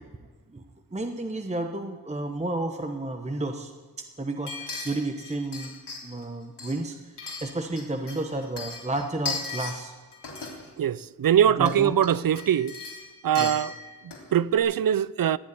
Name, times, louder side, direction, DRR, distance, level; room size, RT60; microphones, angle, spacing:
voice 1, 0.9-3.7 4.0-5.8 6.0-7.1 7.4-9.9 11.6-11.9 13.4-13.5, right 2 dB, 15° right, 1.0 m, -31 dB
sound 1, 4.5-6.2 6.6-7.8 8.1-9.8 10.1-10.7 11.6-11.7 12.0-14.3 14.6-14.7, left 4 dB, 90° left, 3.8 m, -37 dB
voice 2, 10.8-12.8 13.2-13.7 14.0-15.4, right 10 dB, 60° right, 0.5 m, -22 dB
17.5 x 8.3 x 9.8 m
wide cardioid pair, 85°, 40 cm